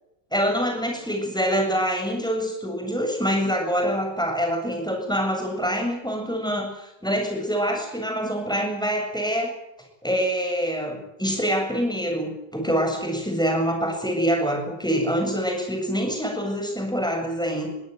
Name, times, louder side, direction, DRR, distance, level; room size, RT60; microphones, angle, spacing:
voice 1, 0.3-9.6 10.0-17.7, equal, ahead, 2 dB, 7.9 m, -25 dB
23.0 x 17.0 x 9.5 m, 0.86 s
omnidirectional pair, 1.9 m